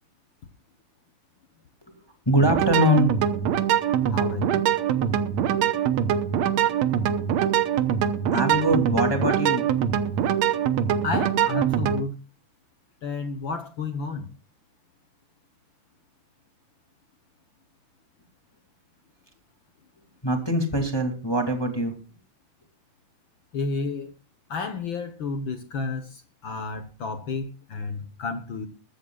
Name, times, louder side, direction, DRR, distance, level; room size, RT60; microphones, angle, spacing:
voice 1, 1.9-3.2 8.3-9.8 20.2-21.9, equal, 10° left, 1.8 m, -23 dB
sound 1, 2.4-12.0, right 9 dB, 65° right, 2.0 m, -23 dB
voice 2, 4.1-4.6 11.0-12.2 13.0-14.3 23.5-24.1 24.5-28.7, left 3 dB, 70° left, 1.1 m, -31 dB
22.0 x 14.0 x 2.3 m
omnidirectional pair, 3.6 m